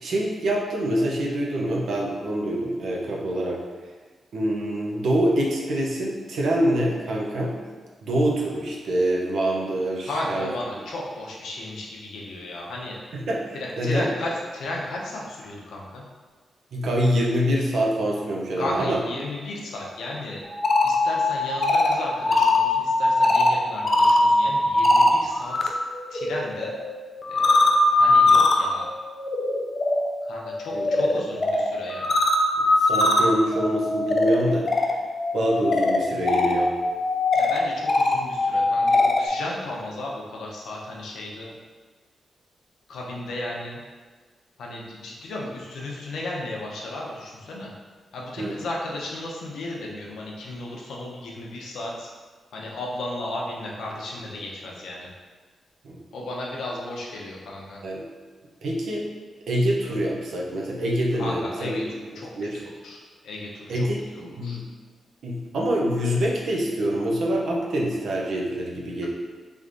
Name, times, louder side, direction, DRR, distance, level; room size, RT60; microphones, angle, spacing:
voice 1, 0.0-3.6 4.3-7.6 8.0-10.5 13.1-14.1 16.7-19.0 30.7-30.9 32.8-35.0 35.3-36.7 48.4-48.6 55.8-56.0 57.8-58.1 58.6-59.1 59.5-61.8 62.3-62.6 63.7-64.6 65.2-69.1, right 1 dB, 65° right, -2 dB, 0.6 m, -25 dB
voice 2, 10.0-13.0 13.5-16.0 18.6-20.4 20.8-25.7 26.1-26.7 27.3-28.9 30.2-32.2 37.3-41.5 42.9-43.8 44.6-47.7 48.1-52.1 52.5-55.1 56.1-57.8 61.2-61.8 62.1-63.9 64.1-64.6, left 1 dB, 80° left, -3 dB, 0.7 m, -34 dB
sound 1, 20.4-25.7 26.0-39.3, left 2 dB, 30° left, 0.3 m, -22 dB
3.4 x 3.2 x 2.6 m, 1.4 s
wide cardioid pair, 165°, 0 cm